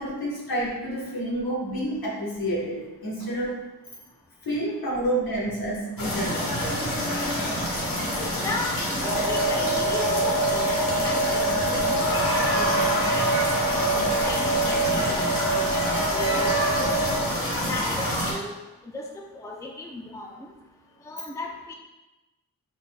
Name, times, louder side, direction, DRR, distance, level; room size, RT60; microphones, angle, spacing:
voice 1, 0.0-3.6 4.4-6.6, right 1 dB, 90° left, -4 dB, 1.3 m, -29 dB
sound 1, 6.0-18.3, left 1 dB, 70° left, 1.2 m, -27 dB
voice 2, 8.4-12.7 13.0-13.3 13.7-17.1 17.7-18.6 18.8-20.5 21.0-21.7, left 2 dB, 10° left, 1 dB, 0.4 m, -36 dB
sound 2, 9.0-17.2, right 2 dB, 50° right, 1.2 m, -25 dB
5.1 x 4.0 x 2.2 m, 1.1 s
wide cardioid pair, 80°, 35 cm